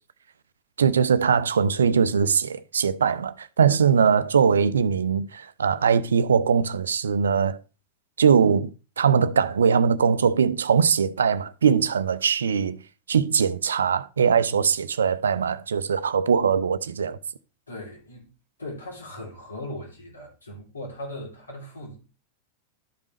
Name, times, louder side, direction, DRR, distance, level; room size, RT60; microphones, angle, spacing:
voice 1, 0.8-7.6 8.2-8.7 9.0-12.8 13.1-17.2, right 6 dB, 70° right, 0.5 m, -21 dB
voice 2, 17.7-18.3 18.6-22.0, left 1 dB, 75° left, 3.2 m, -38 dB
12.5 x 5.2 x 3.2 m
figure-of-eight pair, 90°, 0 cm